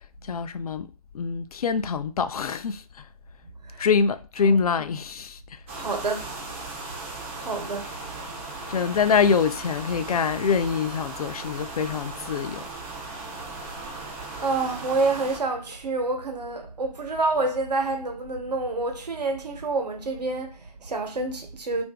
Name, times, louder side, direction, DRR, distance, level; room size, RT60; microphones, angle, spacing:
voice 1, 0.2-0.9 1.1-2.8 3.8-5.6 8.7-12.6, left 6 dB, 65° left, 0.4 m, -25 dB
voice 2, 4.4-4.9 5.7-6.3 7.3-8.0 14.4-21.8, right 3 dB, 90° right, 1.0 m, -28 dB
sound 1, 5.7-15.4, right 3 dB, 20° right, 0.4 m, -37 dB
2.8 x 2.6 x 3.4 m
hypercardioid pair, 155°, 20 cm